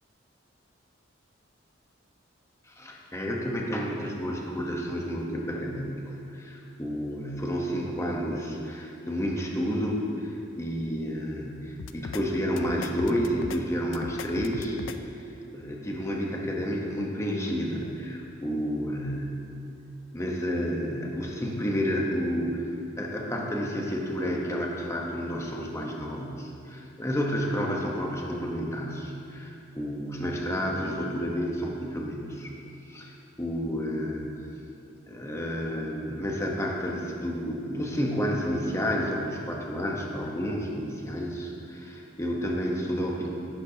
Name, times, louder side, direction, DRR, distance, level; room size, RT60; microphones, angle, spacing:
voice 1, 2.7-14.8 15.1-19.3 20.1-22.7 23.0-32.5 32.9-33.1 33.4-34.4 35.1-43.3, equal, 15° left, -1 dB, 1.0 m, -30 dB
sound 1, 11.8-12.2 12.6-13.6 13.9-15.0, left 5 dB, 75° left, 0.4 m, -38 dB
11.0 x 10.5 x 2.9 m, 2.7 s
head